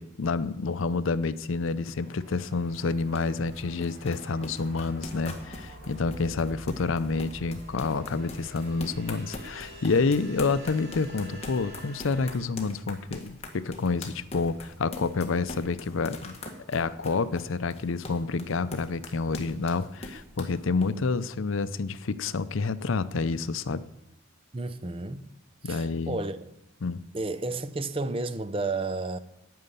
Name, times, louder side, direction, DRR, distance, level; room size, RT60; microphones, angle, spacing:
voice 1, 0.0-16.4 16.7-23.8 25.6-26.2 26.8-27.0, left 4 dB, 75° left, 0.6 m, -28 dB
sound 1, 1.9-20.9, left 2 dB, 30° left, 1.5 m, -43 dB
sound 2, 1.9-12.4, equal, 50° right, 3.0 m, -46 dB
voice 2, 24.5-25.2 25.6-26.5 27.1-29.2, right 3 dB, 25° right, 0.5 m, -32 dB
9.5 x 9.4 x 6.8 m
head